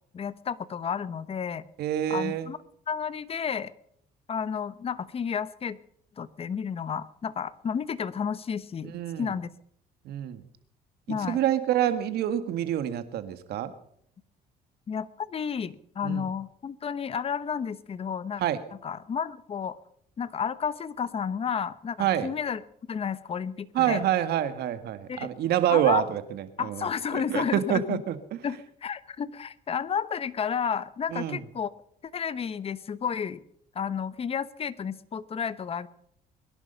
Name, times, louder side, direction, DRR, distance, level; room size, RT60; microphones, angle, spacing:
voice 1, 0.1-1.6 2.1-2.6 2.9-3.7 4.3-5.8 6.2-8.9 9.2-9.5 11.1-11.4 14.9-18.4 18.8-19.8 20.2-22.6 22.9-24.0 25.1-25.3 25.7-26.0 26.6-28.0 28.4-31.7 32.1-33.4 33.7-35.9, left 7 dB, 35° left, 16 dB, 1.0 m, -31 dB
voice 2, 1.8-2.5 8.9-9.3 10.1-10.4 11.1-13.7 16.0-16.3 18.4-18.6 22.0-22.3 23.7-26.9 27.1-28.2 31.1-31.4, right 11 dB, 70° right, 11 dB, 1.7 m, -27 dB
22.0 x 11.0 x 5.7 m, 0.67 s
cardioid pair, 110°, 17 cm